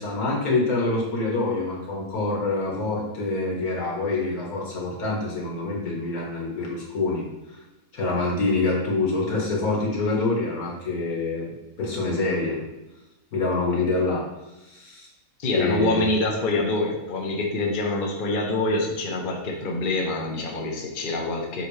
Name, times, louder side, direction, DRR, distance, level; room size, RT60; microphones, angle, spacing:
voice 1, 0.0-7.3 7.9-12.6 13.3-14.2 14.6-15.1 15.5-16.0, left 3 dB, 75° left, -3 dB, 1.9 m, -26 dB
voice 2, 15.4-21.7, left 2 dB, 40° left, 0 dB, 0.9 m, -26 dB
7.4 x 3.9 x 3.2 m, 0.97 s
omnidirectional pair, 1.5 m